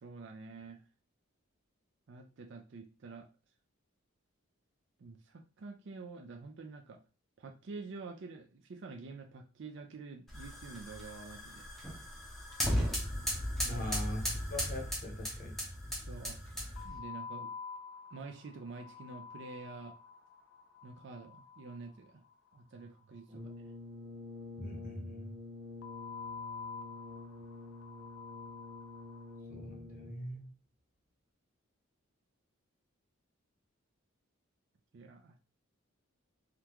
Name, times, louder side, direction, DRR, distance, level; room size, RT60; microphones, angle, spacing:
voice 1, 0.0-0.8 2.1-3.3 5.0-7.0 7.4-11.7 13.6-13.8 15.9-16.4 16.8-17.5 18.1-19.9 20.8-22.2 22.5-23.5 34.9-35.4, right 3 dB, 55° right, 3 dB, 0.4 m, -48 dB
sound 1, 10.3-17.0, equal, ahead, 0.6 m, -36 dB
sound 2, 12.5-13.5 13.8-13.9 14.1-14.2 16.8-22.9 25.8-29.4, left 5 dB, 65° left, 0.4 m, -48 dB
voice 2, 13.7-15.5 24.6-25.3 29.5-30.5, left 1 dB, 40° left, 0 dB, 0.8 m, -42 dB
Brass instrument, 23.3-30.4, left 3 dB, 25° right, 1.0 m, -48 dB
3.6 x 2.2 x 2.9 m, 0.33 s
head